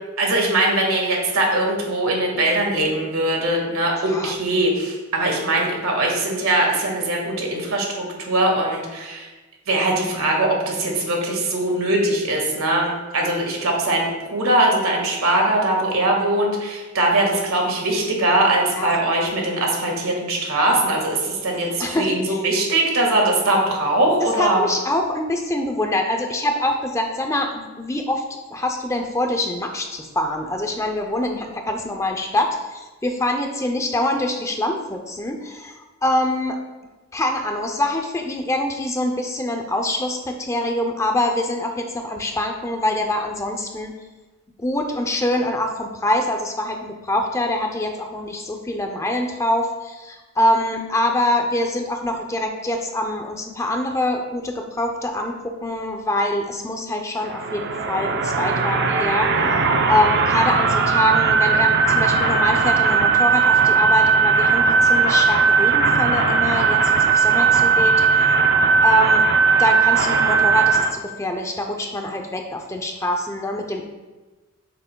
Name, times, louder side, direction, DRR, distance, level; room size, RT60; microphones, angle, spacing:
voice 1, 0.2-9.3 9.7-24.6, right 1 dB, 80° right, 0 dB, 1.7 m, -21 dB
voice 2, 21.8-22.4 24.2-28.2 28.5-36.6 37.1-43.9 44.6-59.3 59.9-68.4 68.8-69.2 69.6-73.8, left 1 dB, 15° left, 3 dB, 0.5 m, -24 dB
sound 1, 57.2-70.9, right 5 dB, 50° right, 0.5 m, -18 dB
8.6 x 6.8 x 2.2 m, 1.2 s
head